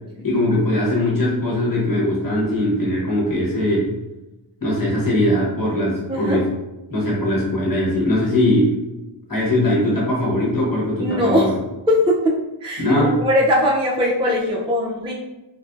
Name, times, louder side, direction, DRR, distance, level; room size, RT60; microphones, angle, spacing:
voice 1, 0.2-3.9 4.6-6.5 6.9-8.8 9.3-11.5 12.8-13.2, left 1 dB, 45° left, -6 dB, 1.1 m, -20 dB
voice 2, 6.1-6.4 11.0-11.5 11.9-12.3 12.6-15.1, left 1 dB, 10° right, -3 dB, 0.4 m, -20 dB
2.5 x 2.2 x 2.4 m, 1.0 s
wide cardioid pair, 65°, 47 cm